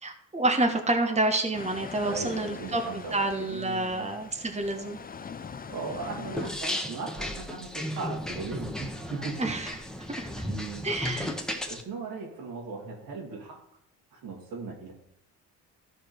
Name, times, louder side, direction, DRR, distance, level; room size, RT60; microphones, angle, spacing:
voice 1, 0.0-5.0 9.4-9.7 10.2-10.5 10.8-11.3, right 2 dB, 20° right, 4 dB, 1.4 m, -28 dB
sound 1, 1.5-6.5, left 6 dB, 25° left, 0.6 m, -42 dB
voice 2, 2.0-4.1 5.7-9.5 10.5-10.9 11.5-13.6 14.1-14.9, right 4 dB, 80° right, -1 dB, 3.0 m, -38 dB
sound 2, 6.4-11.8, left 1 dB, ahead, 1.3 m, -35 dB
13.5 x 4.8 x 4.5 m, 0.74 s
supercardioid pair, 65°, 34 cm